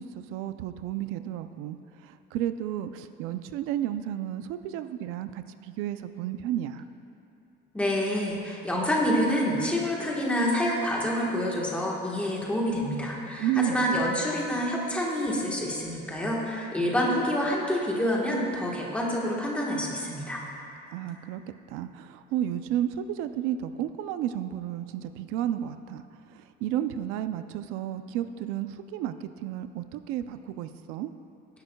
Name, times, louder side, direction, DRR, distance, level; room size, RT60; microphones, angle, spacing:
voice 1, 0.0-6.8 13.4-14.1 20.9-21.4 21.7-31.1, right 11 dB, 85° right, 10 dB, 0.5 m, -32 dB
voice 2, 7.7-20.4, equal, 5° left, -4 dB, 1.3 m, -27 dB
18.0 x 10.5 x 2.3 m, 2.7 s
cardioid pair, 180°, 21 cm